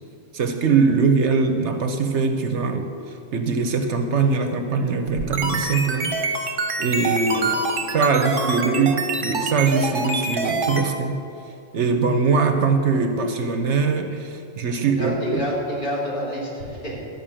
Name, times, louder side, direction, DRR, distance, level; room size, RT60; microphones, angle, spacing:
voice 1, 0.3-2.8 3.3-6.1 6.8-7.5 7.9-11.2 11.7-15.4, right 4 dB, 70° right, 6 dB, 1.0 m, -21 dB
sound 1, 5.1-10.8, right 3 dB, 45° right, 1.2 m, -25 dB
voice 2, 7.3-8.9 14.8-17.0, equal, 40° left, -6 dB, 3.1 m, -31 dB
12.5 x 5.6 x 8.8 m, 2.7 s
omnidirectional pair, 1.3 m